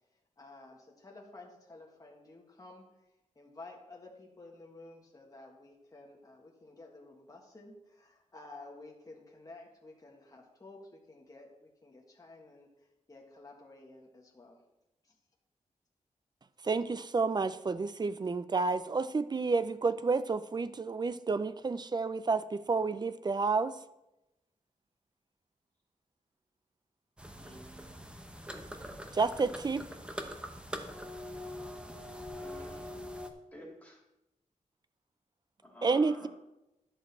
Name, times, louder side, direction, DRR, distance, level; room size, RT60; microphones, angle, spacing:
voice 1, 0.4-2.9 3.3-12.7 13.1-14.6, left 2 dB, 25° left, -1 dB, 1.6 m, -52 dB
voice 2, 16.6-23.7 29.1-29.8 35.8-36.3, right 4 dB, 30° right, 14 dB, 0.4 m, -30 dB
sound 1, 27.2-33.3, equal, 10° right, 0.9 m, -43 dB
voice 3, 27.4-28.0 32.3-32.9 33.5-34.0 35.6-36.3, left 1 dB, 10° left, -2 dB, 2.8 m, -51 dB
11.0 x 6.4 x 4.2 m, 0.93 s
wide cardioid pair, 110°, 13 cm